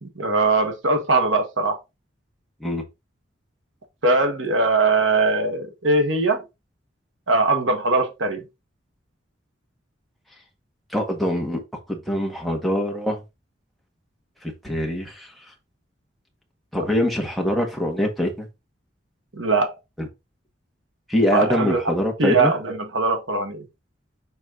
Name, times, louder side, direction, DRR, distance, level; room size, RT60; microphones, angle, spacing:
voice 1, 0.0-1.8 4.0-6.4 7.3-8.4 19.3-19.7 21.3-21.9 22.2-23.6, right 3 dB, 90° right, 1.5 m, -21 dB
voice 2, 10.9-11.6 11.9-13.2 14.4-15.3 16.7-18.5 20.0-20.1 21.1-22.5, equal, ahead, 1.7 m, -24 dB
6.3 x 4.5 x 3.9 m
head